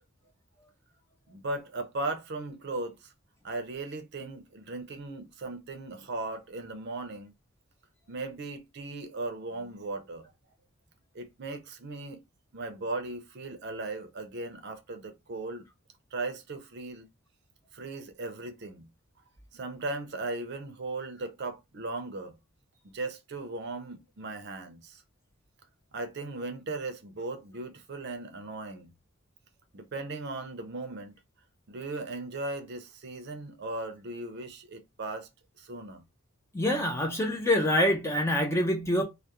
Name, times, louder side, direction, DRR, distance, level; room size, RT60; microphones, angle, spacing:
voice 1, 1.3-3.1 3.4-7.3 8.1-10.3 11.1-12.2 12.5-15.7 16.1-17.1 17.7-18.9 19.5-22.4 22.8-25.0 25.9-28.9 29.7-31.1 31.7-35.3 35.6-36.0, right 2 dB, 50° right, 0.5 m, -37 dB
voice 2, 36.5-39.0, left 1 dB, 10° left, 0.4 m, -25 dB
2.3 x 2.1 x 2.8 m
head